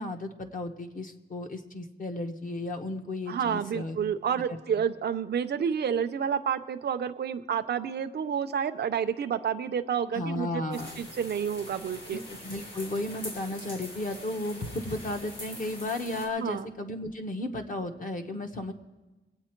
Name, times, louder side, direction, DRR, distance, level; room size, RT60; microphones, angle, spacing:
voice 1, 0.0-4.2 10.1-11.0 12.1-18.7, left 2 dB, 40° left, 4 dB, 1.0 m, -34 dB
voice 2, 3.3-12.2 16.4-16.7, right 7 dB, 55° right, 8 dB, 0.6 m, -30 dB
sound 1, 10.7-16.3, left 1 dB, 65° left, 4.2 m, -43 dB
23.0 x 8.6 x 4.4 m, 1.2 s
wide cardioid pair, 160°, 20 cm